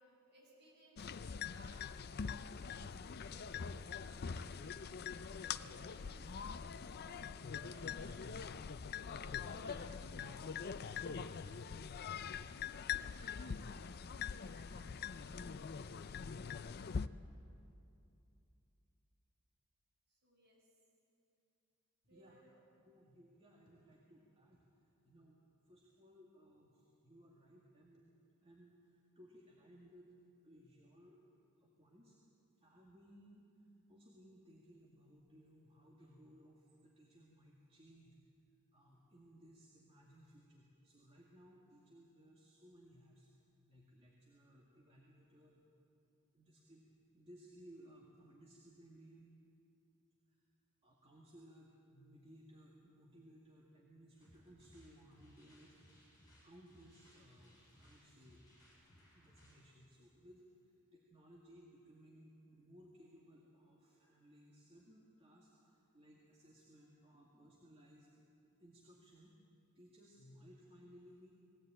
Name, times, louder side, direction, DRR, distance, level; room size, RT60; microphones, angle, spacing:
voice 1, 0.0-1.9 2.2-8.6 8.9-11.8 20.1-20.7 22.1-22.6, right 1 dB, 50° right, -4 dB, 7.1 m, -63 dB
sound 1, 1.0-17.1, left 6 dB, 45° left, 0.5 m, -44 dB
voice 2, 22.1-22.4 22.9-24.6 25.0-25.4 25.7-28.1 28.4-30.1 30.4-31.2 31.6-32.2 32.6-38.2 38.7-43.3 43.7-45.6 46.3-49.3 50.3-50.4 50.8-56.1 56.4-58.4 59.1-68.1 68.6-69.4 69.7-71.3, equal, 25° right, -4 dB, 2.1 m, -62 dB
sound 2, 54.1-59.7, equal, 15° left, 7.1 m, -65 dB
20.5 x 16.5 x 8.9 m, 2.7 s
head